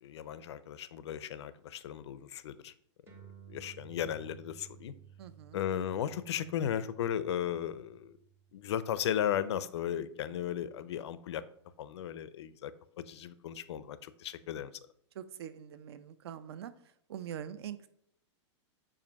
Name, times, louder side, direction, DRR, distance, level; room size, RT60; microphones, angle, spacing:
voice 1, 0.0-2.7 3.5-4.9 5.5-8.1 8.5-11.4 11.8-12.7 13.0-14.7, left 10 dB, 65° left, 15 dB, 0.5 m, -35 dB
sound 1, 3.1-9.9, right 9 dB, 15° right, 0.8 m, -56 dB
voice 2, 5.2-5.6 15.1-16.7 17.1-17.9, right 9 dB, 60° right, 13 dB, 0.5 m, -43 dB
7.3 x 2.6 x 5.2 m, 0.69 s
supercardioid pair, 175°, 15 cm